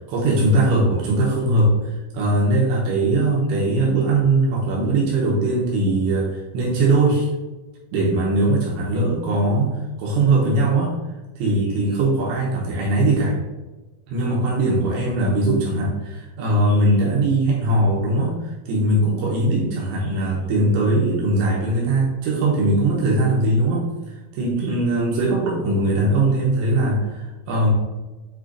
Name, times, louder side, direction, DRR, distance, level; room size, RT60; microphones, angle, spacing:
voice 1, 0.1-1.7 2.1-7.3 7.9-10.9 11.4-13.4 14.1-18.4 18.7-23.9 24.3-27.7, right 2 dB, 80° right, -4 dB, 3.3 m, -20 dB
8.2 x 3.0 x 3.8 m, 1.2 s
omnidirectional pair, 5.4 m